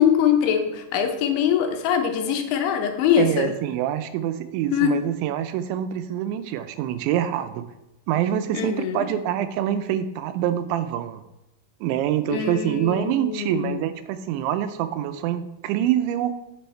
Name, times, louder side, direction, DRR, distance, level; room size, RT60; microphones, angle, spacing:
voice 1, 0.0-3.5 4.7-5.0 8.5-9.1 12.3-13.8, left 9 dB, 90° left, 5 dB, 3.4 m, -22 dB
voice 2, 3.2-7.6 8.1-11.2 11.8-16.3, right 11 dB, 85° right, 11 dB, 2.9 m, -25 dB
8.8 x 7.0 x 4.4 m, 0.92 s
omnidirectional pair, 5.3 m